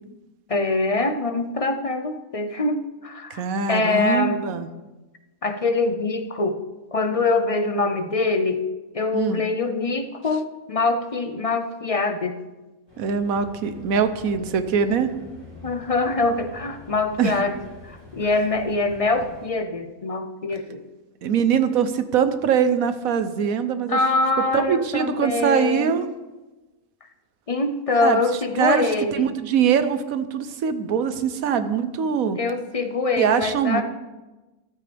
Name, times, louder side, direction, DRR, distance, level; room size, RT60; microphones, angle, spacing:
voice 1, 0.5-3.4 3.7-4.4 5.4-6.6 6.9-8.7 8.9-12.4 15.6-17.6 17.8-20.8 23.9-25.9 27.5-29.3 32.4-33.8, left 3 dB, 40° left, 7 dB, 0.5 m, -24 dB
voice 2, 3.3-4.7 9.1-9.4 13.0-15.1 17.2-17.4 21.2-24.0 24.5-26.1 28.0-28.2 28.6-32.4 33.2-33.8, right 7 dB, 75° right, 10 dB, 1.2 m, -22 dB
sound 1, 12.9-19.5, left 1 dB, 50° right, 4.8 m, -45 dB
14.0 x 12.0 x 3.4 m, 1.1 s
omnidirectional pair, 1.5 m